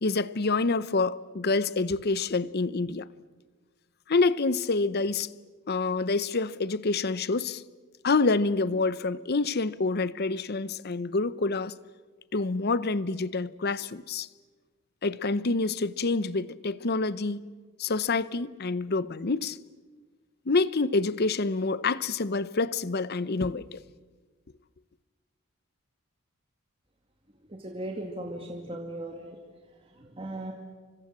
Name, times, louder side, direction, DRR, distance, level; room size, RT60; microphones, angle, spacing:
voice 1, 0.0-3.1 4.1-5.3 5.7-7.6 8.0-11.7 12.3-14.3 15.0-17.5 17.8-19.6 20.5-23.8, left 3 dB, 45° left, 0.7 m, -27 dB
voice 2, 27.5-29.4 29.8-30.5, right 1 dB, 25° right, 2.1 m, -37 dB
29.5 x 25.0 x 7.4 m
head